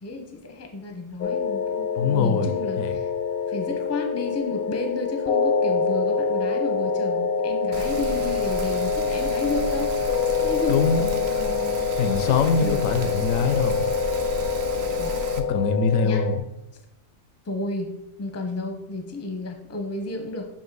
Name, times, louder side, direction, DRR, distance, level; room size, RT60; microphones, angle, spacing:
voice 1, 0.0-3.1 3.5-9.9 10.4-12.8 15.0-15.1 15.9-16.3 17.5-17.9 18.2-20.4, left 2 dB, 20° left, 4 dB, 0.5 m, -32 dB
sound 1, 1.2-16.4, left 5 dB, 60° left, 0.6 m, -25 dB
voice 2, 2.0-2.5 2.8-3.0 10.7-11.0 12.0-13.8 15.4-16.4, left 5 dB, 90° left, 9 dB, 1.0 m, -23 dB
Rain, 7.7-15.4, right 3 dB, 60° right, 0.8 m, -34 dB
7.2 x 2.8 x 4.6 m, 0.88 s
omnidirectional pair, 1.4 m